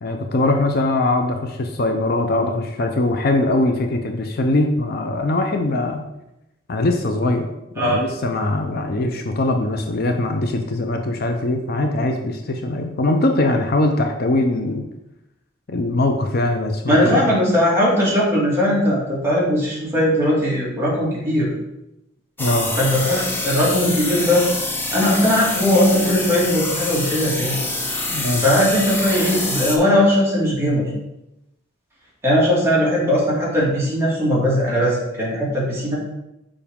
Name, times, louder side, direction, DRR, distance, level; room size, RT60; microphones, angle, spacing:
voice 1, 0.0-6.1 6.7-7.5 7.7-14.8 15.7-17.3 22.4-22.7 28.1-28.4, left 2 dB, 50° left, 4 dB, 0.6 m, -21 dB
voice 2, 16.9-21.5 22.8-24.4 24.9-27.6 28.4-30.8 32.2-36.0, equal, 15° right, -6 dB, 2.3 m, -19 dB
sound 1, 22.4-29.8, left 2 dB, 10° left, 0.7 m, -26 dB
7.0 x 5.0 x 3.6 m, 0.89 s
head